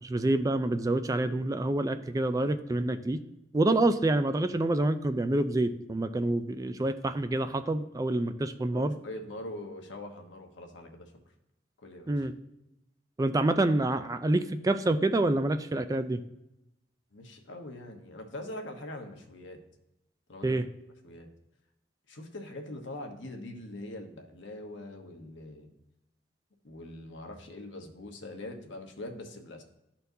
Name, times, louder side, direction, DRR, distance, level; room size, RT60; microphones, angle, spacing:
voice 1, 0.0-3.2 3.5-8.9 12.1-12.3 13.2-16.2 20.4-20.6, right 2 dB, 20° right, 10 dB, 0.3 m, -27 dB
voice 2, 8.7-11.1 11.8-12.2 17.1-19.6 20.3-20.6 21.0-21.3 22.1-25.7 26.6-29.6, left 1 dB, 80° left, 3 dB, 1.1 m, -43 dB
12.5 x 4.4 x 2.7 m, 0.88 s
head